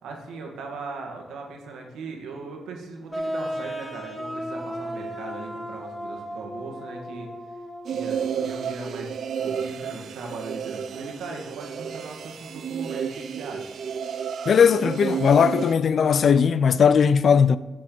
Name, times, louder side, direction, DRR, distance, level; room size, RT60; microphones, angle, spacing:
voice 1, 0.0-7.3 7.9-13.7, right 3 dB, 90° right, 1.4 m, -38 dB
sound 1, 3.1-8.6, equal, 5° right, 1.4 m, -35 dB
sound 2, 7.8-15.7, right 7 dB, 70° right, 0.3 m, -32 dB
voice 2, 14.5-17.6, left 6 dB, 65° left, 0.3 m, -18 dB
7.2 x 6.3 x 3.8 m
cardioid pair, 70°, 0 cm